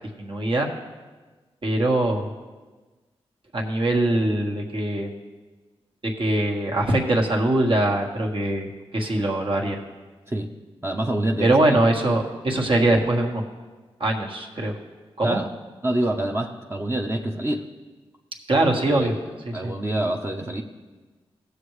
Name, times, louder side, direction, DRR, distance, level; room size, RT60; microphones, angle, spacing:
voice 1, 0.2-0.7 1.6-2.3 3.5-5.1 6.2-8.7 8.9-9.8 11.4-13.4 14.0-14.7 15.2-15.4 18.5-19.1 19.4-19.7, right 1 dB, 55° right, 1 dB, 1.6 m, -22 dB
voice 2, 10.8-11.6 15.2-15.5 15.8-17.7 18.8-19.2 19.5-20.6, right 1 dB, 20° right, 1 dB, 0.8 m, -26 dB
16.0 x 6.9 x 3.2 m, 1.3 s
cardioid pair, 50°, 11 cm